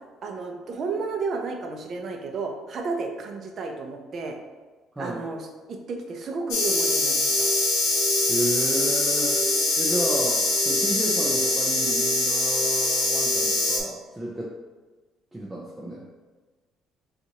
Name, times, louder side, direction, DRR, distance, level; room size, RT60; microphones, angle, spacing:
voice 1, 0.2-4.4 5.0-7.5, right 4 dB, 50° right, 3 dB, 0.6 m, -32 dB
sound 1, 6.5-13.8, left 2 dB, 85° left, 0.9 m, -23 dB
voice 2, 8.3-9.4 9.8-14.5 15.3-16.0, right 1 dB, 10° right, -3 dB, 0.6 m, -32 dB
5.5 x 2.5 x 2.9 m, 1.3 s
cardioid pair, 110°, 0 cm